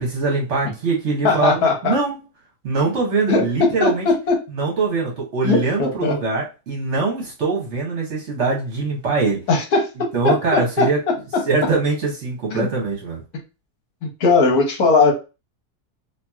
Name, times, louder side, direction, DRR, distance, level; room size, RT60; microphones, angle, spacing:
voice 1, 0.0-2.2 2.6-4.1 4.5-9.4 10.1-11.0 11.5-13.2, right 4 dB, 55° right, -1 dB, 1.0 m, -22 dB
voice 2, 1.2-1.9 3.3-3.4 3.8-4.3 5.4-6.1 9.5-9.9 10.2-10.9 11.3-11.4 12.5-12.7 14.0-15.1, left 4 dB, 70° left, 2 dB, 1.2 m, -18 dB
2.9 x 2.6 x 2.3 m, 0.30 s
omnidirectional pair, 1.7 m